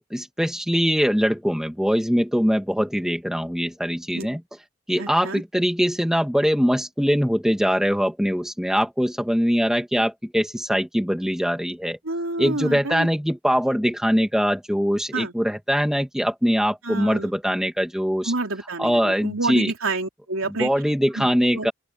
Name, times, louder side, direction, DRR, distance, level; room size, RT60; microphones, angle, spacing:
voice 1, 0.0-4.4 4.9-12.0 12.4-18.3 18.8-19.7 20.5-21.7, equal, ahead, 2.4 m, -22 dB
voice 2, 5.0-5.4 12.1-13.1 15.1-15.3 16.8-17.3 18.3-20.7 21.2-21.3 21.5-21.7, right 3 dB, 75° right, 3.4 m, -28 dB
open air
head